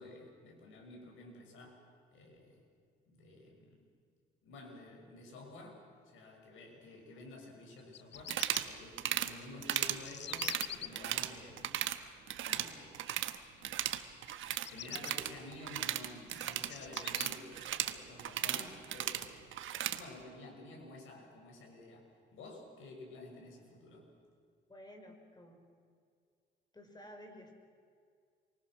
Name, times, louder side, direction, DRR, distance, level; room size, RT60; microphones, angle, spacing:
voice 1, 0.0-1.8 2.1-2.7 3.1-3.8 4.4-11.8 12.4-13.0 13.6-13.9 14.7-19.4 19.9-24.1, left 2 dB, 85° left, 1 dB, 6.5 m, -51 dB
Bird vocalization bird call bird song, 7.8-8.6 9.4-10.9 14.4-15.1 15.8-17.3, left 11 dB, 65° left, 0.7 m, -45 dB
sound 1, 8.2-8.7 9.0-9.3 9.6-10.0 10.3-11.3 11.6-12.0 12.3-13.4 13.6-20.0, right 12 dB, 80° right, 1.3 m, -36 dB
voice 2, 24.7-25.6 26.7-27.5, equal, 20° left, 4 dB, 5.4 m, -53 dB
28.0 x 24.5 x 6.2 m, 2.2 s
cardioid pair, 90°, 20 cm